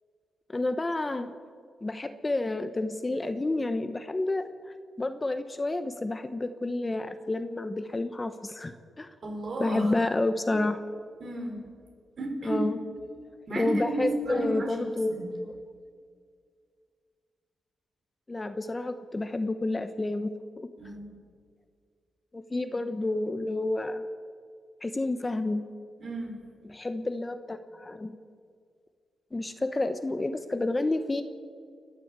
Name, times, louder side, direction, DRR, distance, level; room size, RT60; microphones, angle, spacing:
voice 1, 0.5-1.4 1.8-4.5 5.0-9.1 9.6-10.8 12.4-12.8 13.5-15.5 18.3-20.3 22.3-24.1 24.8-25.6 26.6-28.1 29.3-31.2, left 2 dB, 20° left, 9 dB, 1.0 m, -30 dB
voice 2, 9.2-9.9 11.2-11.6 12.2-12.7 13.5-15.3 20.8-21.2 26.0-26.4, right 2 dB, 55° right, 1 dB, 5.4 m, -33 dB
29.5 x 11.5 x 8.1 m, 2.1 s
wide cardioid pair, 115°, 0 cm